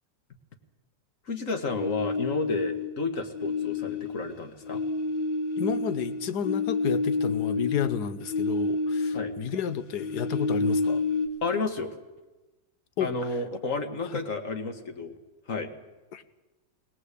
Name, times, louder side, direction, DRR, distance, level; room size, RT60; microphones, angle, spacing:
voice 1, 1.3-4.8 9.1-9.3 11.4-11.9 13.0-15.1 15.5-15.7, left 3 dB, 50° left, 7 dB, 1.9 m, -31 dB
sound 1, 1.7-3.0 3.3-9.4 9.7-11.3, left 3 dB, 90° left, 2.0 m, -29 dB
voice 2, 5.6-11.0 13.0-13.1 14.1-14.2 16.1-16.2, left 8 dB, 65° left, 13 dB, 1.5 m, -31 dB
20.0 x 19.5 x 8.3 m, 1.1 s
omnidirectional pair, 1.9 m